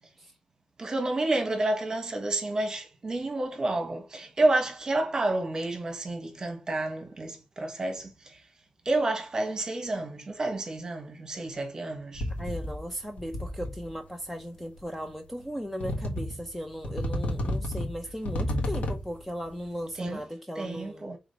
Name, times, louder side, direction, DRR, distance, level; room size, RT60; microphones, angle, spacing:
voice 1, 0.8-8.1 8.8-12.3 20.0-20.2 20.5-21.2, right 2 dB, 30° right, 1.3 m, -29 dB
sound 1, 12.1-12.9 13.2-13.9 14.8-14.9 15.8-16.5 16.8-19.2, left 1 dB, 90° left, 1.6 m, -32 dB
voice 2, 12.4-21.1, equal, 5° left, 0.6 m, -37 dB
5.0 x 4.0 x 4.9 m
wide cardioid pair, 180°, 2 cm